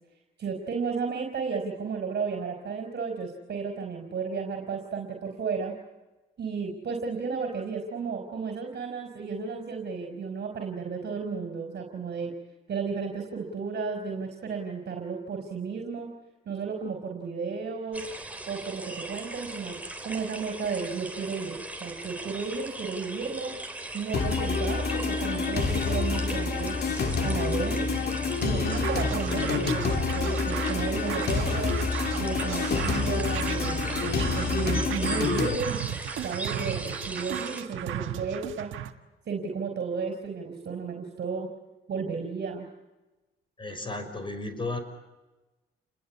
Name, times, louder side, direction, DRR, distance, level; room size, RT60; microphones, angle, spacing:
voice 1, 0.4-5.7 6.4-12.3 12.7-16.1 16.5-18.0 18.5-19.8 20.0-23.5 23.9-28.0 28.4-31.8 32.1-35.9 36.2-38.7 39.3-41.5 41.9-42.7, right 5 dB, 55° right, 3 dB, 4.3 m, -33 dB
sound 1, 17.9-37.6, right 2 dB, 5° right, 3.8 m, -39 dB
sound 2, 24.1-35.6, left 4 dB, 55° left, 3.1 m, -28 dB
voice 2, 28.5-28.9 43.6-44.8, left 2 dB, 25° left, 9 dB, 6.0 m, -34 dB
Scratching (performance technique), 28.6-38.9, right 11 dB, 80° right, 1.6 m, -36 dB
29.5 x 21.5 x 8.4 m, 1.1 s
cardioid pair, 90°, 20 cm